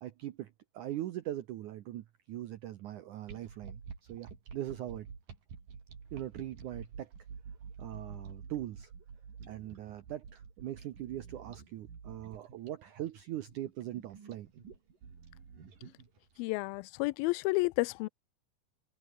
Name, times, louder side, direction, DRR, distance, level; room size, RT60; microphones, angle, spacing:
voice 1, 0.0-5.1 6.1-7.1 7.8-8.9 9.5-14.5, right 13 dB, 75° right, 1.8 m, -41 dB
sound 1, 3.3-16.4, right 6 dB, 55° right, 5.6 m, -49 dB
voice 2, 16.4-18.1, left 23 dB, 85° left, 2.1 m, -31 dB
omnidirectional pair, 4.8 m